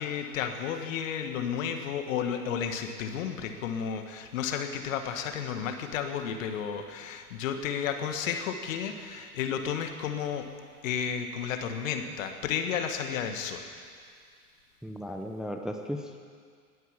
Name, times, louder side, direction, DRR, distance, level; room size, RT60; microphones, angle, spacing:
voice 1, 0.0-10.5 10.8-13.7, left 7 dB, 60° left, 6 dB, 1.8 m, -32 dB
voice 2, 14.8-16.2, equal, ahead, 3 dB, 0.8 m, -36 dB
19.5 x 9.4 x 7.4 m, 2.1 s
figure-of-eight pair, 95°, 45 cm